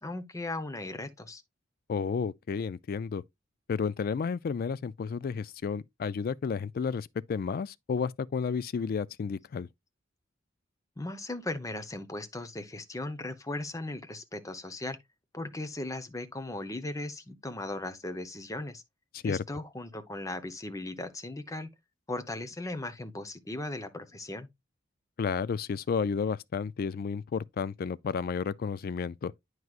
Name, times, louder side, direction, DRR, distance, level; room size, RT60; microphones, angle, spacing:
voice 1, 0.0-1.4 11.0-15.0 15.3-18.8 19.2-21.7 22.1-24.5, left 2 dB, 15° left, 0.7 m, -37 dB
voice 2, 1.9-3.2 3.7-9.7 19.1-19.4 25.2-29.3, left 5 dB, 50° left, 0.3 m, -32 dB
9.4 x 4.7 x 2.4 m
head